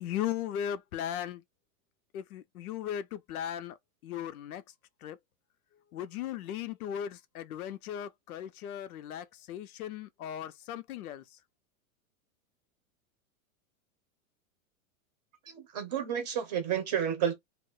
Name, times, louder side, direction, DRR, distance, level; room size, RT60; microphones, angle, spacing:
voice 1, 0.0-1.4 2.1-3.8 4.0-4.6 5.0-5.2 5.9-11.2, left 10 dB, 85° left, 0.6 m, -37 dB
voice 2, 15.5-17.3, right 9 dB, 30° right, 0.7 m, -31 dB
2.4 x 2.1 x 3.6 m
supercardioid pair, 175°, 43 cm